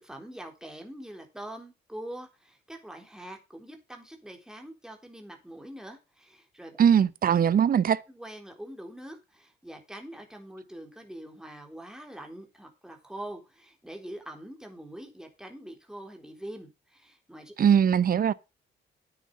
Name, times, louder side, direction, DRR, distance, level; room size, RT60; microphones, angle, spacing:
voice 1, 0.0-6.8 8.1-17.5, right 1 dB, 5° right, 3.8 m, -44 dB
voice 2, 6.8-8.0 17.6-18.3, right 8 dB, 45° right, 0.8 m, -21 dB
9.6 x 9.1 x 4.9 m
cardioid pair, 90°, 20 cm